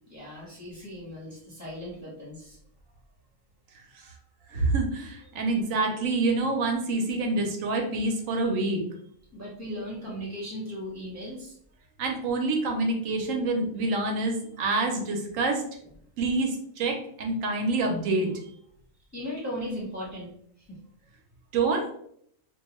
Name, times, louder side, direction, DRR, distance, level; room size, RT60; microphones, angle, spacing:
voice 1, 0.1-2.6 9.3-11.5 19.1-20.3 20.6-20.8, equal, 15° left, -5 dB, 0.8 m, -37 dB
voice 2, 4.5-8.8 12.0-15.6 16.2-18.3 21.5-21.9, right 3 dB, 70° right, 3 dB, 0.9 m, -27 dB
2.4 x 2.3 x 2.9 m, 0.67 s
omnidirectional pair, 1.5 m